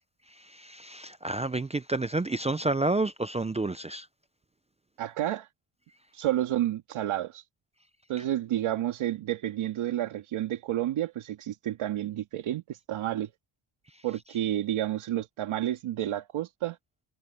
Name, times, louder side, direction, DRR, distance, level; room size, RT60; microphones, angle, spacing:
voice 1, 0.4-4.1, right 2 dB, 15° right, 0.5 m, -30 dB
voice 2, 5.0-5.5 6.1-7.4 8.1-13.3 14.0-16.8, right 12 dB, 75° right, 1.9 m, -30 dB
cardioid pair, 130°, 50 cm